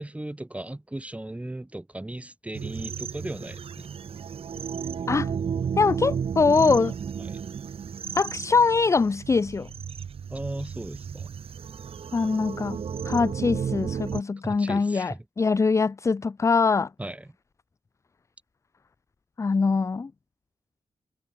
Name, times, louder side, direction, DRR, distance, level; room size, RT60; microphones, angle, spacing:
voice 1, 0.0-3.9 7.2-7.5 10.3-11.3 14.4-15.2 17.0-17.3, right 1 dB, 15° right, 4.0 m, -36 dB
sound 1, 2.5-14.2, right 7 dB, 65° right, 1.6 m, -33 dB
voice 2, 5.8-6.9 8.2-9.7 12.1-12.8 13.0-16.9 19.4-20.1, left 4 dB, 30° left, 0.5 m, -23 dB
wide cardioid pair, 95°, 10 cm